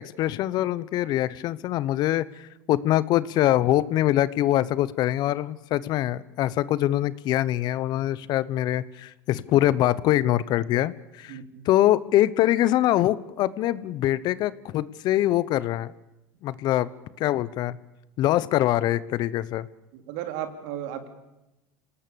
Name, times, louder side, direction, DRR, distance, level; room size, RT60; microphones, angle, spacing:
voice 1, 0.0-11.4 11.7-15.9 16.4-16.9 17.2-17.8 18.2-19.7, left 14 dB, 55° left, 19 dB, 0.9 m, -24 dB
voice 2, 11.3-11.7 16.7-16.9 19.9-21.1, right 10 dB, 70° right, 7 dB, 3.2 m, -35 dB
27.5 x 18.5 x 7.0 m, 0.94 s
supercardioid pair, 105°, 9 cm